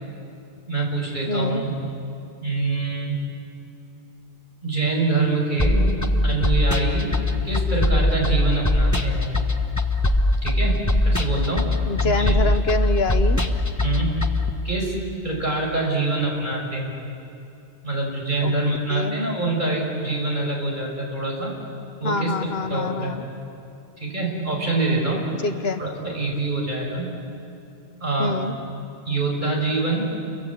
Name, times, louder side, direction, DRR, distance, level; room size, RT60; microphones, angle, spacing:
voice 1, 0.7-1.8 2.4-3.2 4.6-7.2 7.4-9.3 10.4-11.7 12.0-12.3 13.8-14.3 14.6-16.9 17.8-21.6 22.0-23.1 24.0-25.3 25.8-27.2 28.0-28.4 29.1-30.2, right 3 dB, 45° right, -1 dB, 5.7 m, -25 dB
voice 2, 1.3-1.6 11.9-13.4 18.4-18.5 18.9-19.2 22.0-23.2 25.4-25.8 28.2-28.5, left 3 dB, 65° left, 9 dB, 1.3 m, -25 dB
sound 1, 5.6-14.5, left 1 dB, 15° left, 1.3 m, -21 dB
29.0 x 23.5 x 8.4 m, 2.7 s
omnidirectional pair, 1.1 m